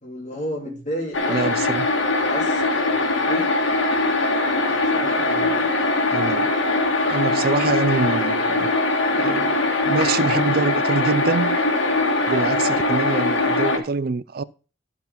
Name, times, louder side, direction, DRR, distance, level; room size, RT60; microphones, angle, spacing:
voice 1, 0.0-1.7 2.2-3.5 4.8-5.7, equal, 40° left, 3.5 m, -33 dB
sound 1, 1.1-13.8, left 2 dB, 85° left, 1.9 m, -21 dB
voice 2, 1.3-1.9 6.1-6.5 7.1-8.7 9.1-9.6 9.8-11.6 12.3-14.4, right 4 dB, 50° right, 0.4 m, -25 dB
12.5 x 4.9 x 5.3 m
head